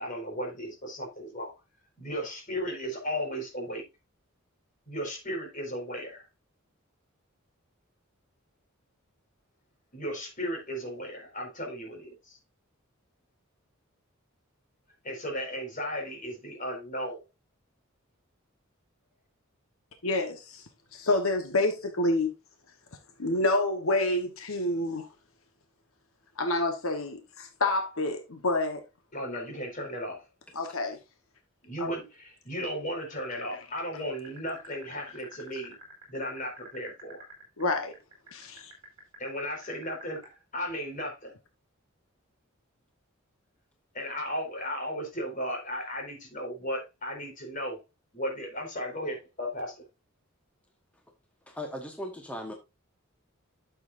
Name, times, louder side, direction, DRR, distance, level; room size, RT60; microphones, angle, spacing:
voice 1, 0.0-1.5 2.0-3.8 4.9-6.3 9.9-12.4 15.0-17.2 29.1-30.2 31.6-35.7 36.1-37.3 39.2-41.3 43.9-47.8 48.1-49.8, equal, 40° left, 4.7 m, -35 dB
voice 2, 20.0-22.3 23.2-25.1 26.4-28.8 30.5-31.0 31.8-31.9 37.6-37.9 38.3-38.7, left 2 dB, 75° left, 1.2 m, -28 dB
sound 1, 34.1-40.3, right 3 dB, 25° right, 5.2 m, -48 dB
voice 3, 51.5-52.5, left 1 dB, 5° left, 1.2 m, -37 dB
12.0 x 7.2 x 2.6 m
head